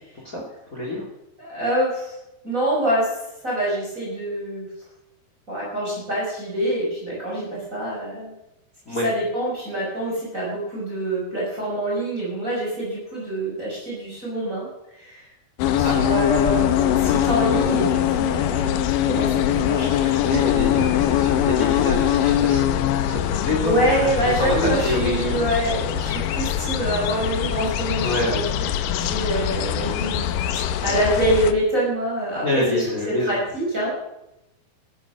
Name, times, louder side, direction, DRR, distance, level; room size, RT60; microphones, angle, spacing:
voice 1, 0.7-1.0 8.9-9.0 15.8-15.9 20.2-22.8 23.1-25.5 28.0-28.4 29.9-30.1 32.4-33.4, left 2 dB, 25° left, 0 dB, 2.0 m, -27 dB
voice 2, 1.4-2.2 2.4-3.1 3.4-4.7 5.5-8.3 8.9-14.7 15.0-15.2 15.6-18.8 19.0-20.4 21.3-21.4 23.6-28.7 28.9-30.2 30.8-33.9, right 1 dB, 20° right, -5 dB, 5.8 m, -25 dB
sound 1, 15.6-31.5, left 11 dB, 80° left, 2.0 m, -22 dB
14.5 x 12.0 x 6.0 m, 0.91 s
omnidirectional pair, 4.8 m